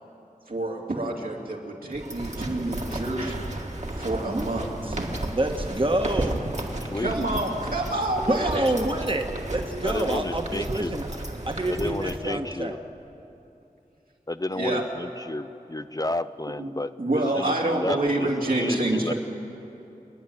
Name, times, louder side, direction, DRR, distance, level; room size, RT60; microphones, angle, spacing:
voice 1, 0.5-3.4 4.0-5.1 6.9-8.7 14.6-14.8 16.6-16.7 17.0-19.1, right 2 dB, 75° right, -2 dB, 2.9 m, -27 dB
sound 1, 1.9-12.2, right 1 dB, 50° right, 2.0 m, -33 dB
voice 2, 4.2-4.7 5.3-6.5 8.3-11.1 11.4-12.8, right 1 dB, 35° right, 4 dB, 1.4 m, -27 dB
voice 3, 6.8-7.1 9.8-10.9 11.7-12.8 14.3-18.3 18.5-19.1, left 2 dB, 25° left, 12 dB, 0.5 m, -31 dB
29.0 x 10.5 x 9.2 m, 2.8 s
wide cardioid pair, 55°, 15 cm